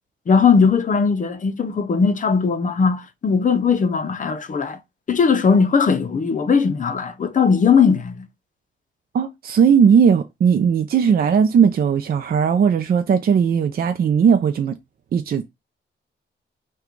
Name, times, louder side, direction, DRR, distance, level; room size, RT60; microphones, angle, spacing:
voice 1, 0.3-4.8 5.1-8.3, left 5 dB, 40° left, 0.6 m, -18 dB
voice 2, 9.1-14.8 15.1-15.4, right 7 dB, 45° right, 0.4 m, -17 dB
5.8 x 2.3 x 3.8 m
wide cardioid pair, 125°, 21 cm